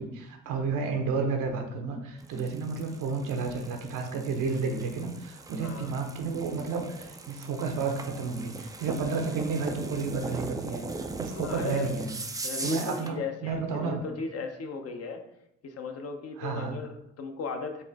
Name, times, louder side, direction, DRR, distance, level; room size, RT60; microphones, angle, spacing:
voice 1, 0.0-10.8 11.2-12.1 12.6-14.0 16.4-16.8, right 4 dB, 65° right, 4 dB, 0.8 m, -31 dB
sound 1, 2.2-13.2, right 3 dB, 10° right, 0.3 m, -39 dB
voice 2, 5.6-5.9 11.3-12.0 12.4-15.2 15.6-17.8, left 4 dB, 45° left, 5 dB, 0.7 m, -36 dB
4.2 x 2.5 x 3.4 m, 0.81 s
hypercardioid pair, 55°, 34 cm